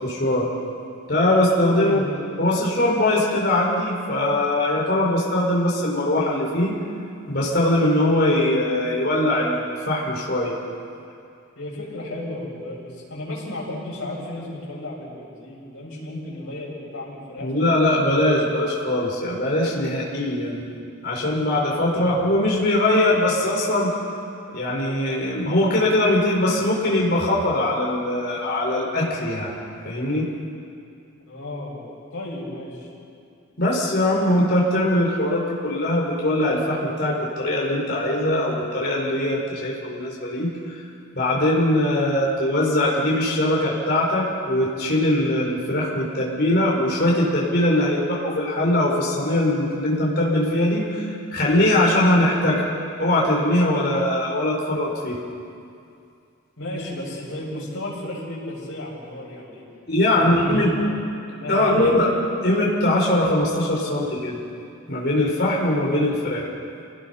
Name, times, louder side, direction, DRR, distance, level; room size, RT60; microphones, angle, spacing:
voice 1, 0.0-0.5 1.1-2.1 2.4-6.7 7.3-10.5 17.4-20.7 21.0-23.9 24.5-29.5 29.8-30.3 33.6-40.8 41.1-52.6 53.0-55.2 59.9-60.8 61.5-62.1 62.4-64.4 64.9-66.5, left 1 dB, 50° left, -3 dB, 4.5 m, -21 dB
voice 2, 1.7-2.1 11.6-17.5 21.9-22.2 31.3-31.8 32.1-32.9 56.6-59.6 60.1-61.0 61.3-62.0, left 1 dB, 85° left, -5 dB, 7.5 m, -33 dB
28.0 x 19.0 x 5.7 m, 2.5 s
head